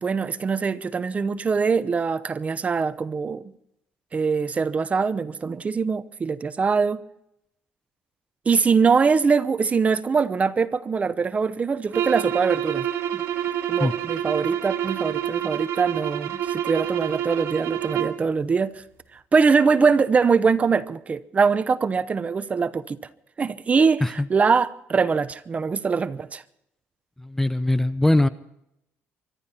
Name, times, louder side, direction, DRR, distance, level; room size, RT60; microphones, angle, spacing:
voice 1, 0.0-3.4 4.1-7.0 8.5-13.2 13.7-18.8 19.3-23.0 23.4-26.4, right 5 dB, 30° right, 0.8 m, -23 dB
sound 1, 11.9-18.2, right 11 dB, 70° right, 3.2 m, -28 dB
voice 2, 27.2-28.3, left 1 dB, 5° left, 0.7 m, -21 dB
24.5 x 12.0 x 4.3 m
cardioid pair, 125°, 5 cm